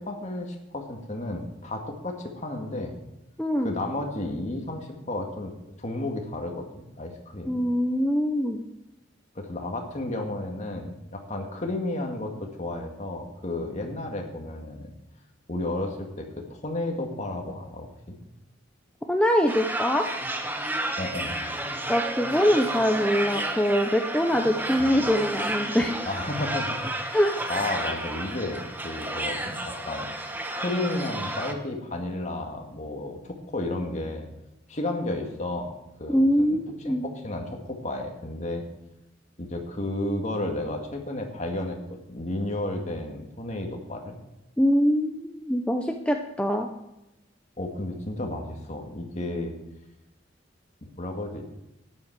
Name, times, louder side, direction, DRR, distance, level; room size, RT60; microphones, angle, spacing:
voice 1, 0.0-3.0 3.6-5.5 5.8-7.6 9.4-14.9 15.5-18.2 21.0-21.4 24.8-24.9 26.1-26.8 27.5-30.1 30.5-34.3 34.7-38.6 39.4-44.2 47.6-49.5 50.8-51.5, left 2 dB, 40° left, 2 dB, 1.9 m, -32 dB
voice 2, 3.4-3.7 7.5-8.6 19.1-20.1 21.9-26.1 27.1-27.4 36.1-37.0 44.6-46.7, equal, 5° left, 3 dB, 0.6 m, -23 dB
sound 1, 19.5-31.5, right 1 dB, 10° right, 1.1 m, -31 dB
12.5 x 10.0 x 4.7 m, 0.91 s
head